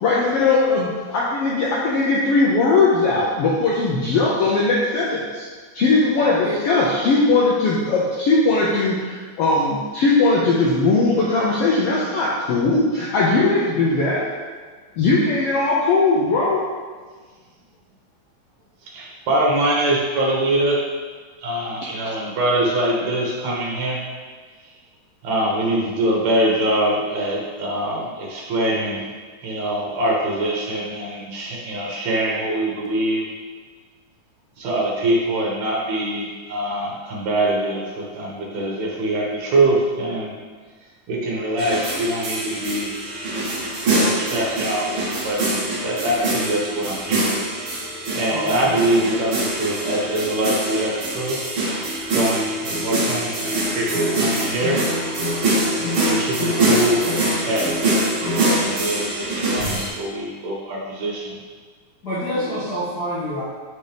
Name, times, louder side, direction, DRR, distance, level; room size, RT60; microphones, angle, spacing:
voice 1, 0.0-5.5 5.7-14.2 15.0-16.6, left 3 dB, 75° left, -5 dB, 1.4 m, -19 dB
voice 2, 6.2-6.5 48.3-48.7 62.0-63.4, equal, 55° left, -11 dB, 1.1 m, -27 dB
voice 3, 18.9-20.8 21.4-24.0 25.2-29.0 29.4-33.2 34.6-40.3 41.1-42.9 43.9-47.4 48.1-54.8 56.1-57.7 58.3-61.4, right 1 dB, 70° right, -3 dB, 2.1 m, -23 dB
sound 1, 41.6-59.9, right 1 dB, 50° right, 2.0 m, -24 dB
7.9 x 4.2 x 3.4 m, 1.5 s
omnidirectional pair, 3.4 m